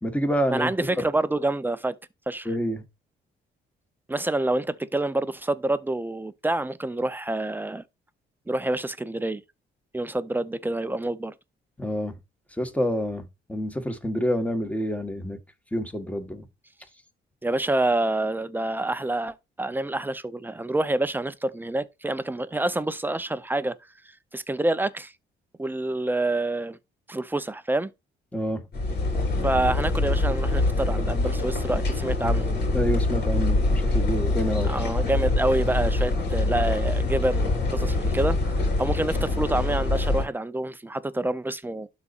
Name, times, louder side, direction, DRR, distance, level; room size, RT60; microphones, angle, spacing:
voice 1, 0.0-0.7 2.4-2.8 11.8-12.2 12.6-15.4 15.7-16.5 28.3-28.6 32.7-34.7, equal, 5° left, 1.5 m, -27 dB
voice 2, 0.5-1.9 2.3-2.5 4.1-7.8 8.5-9.4 9.9-11.3 17.4-23.7 24.3-25.1 25.6-26.8 27.1-27.9 29.4-32.6 34.6-41.9, right 2 dB, 10° right, 0.7 m, -27 dB
sound 1, 28.7-40.3, left 2 dB, 55° left, 4.2 m, -24 dB
12.0 x 4.2 x 2.6 m
cardioid pair, 90°, 20 cm